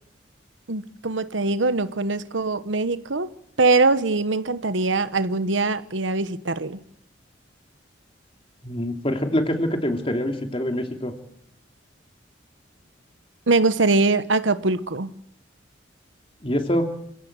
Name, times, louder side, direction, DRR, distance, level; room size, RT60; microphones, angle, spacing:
voice 1, 0.7-3.3 3.6-6.8 13.5-15.1, right 3 dB, 80° right, 1.1 m, -22 dB
voice 2, 8.6-11.1 16.4-16.9, equal, 30° left, 3.0 m, -25 dB
28.0 x 16.5 x 8.1 m
head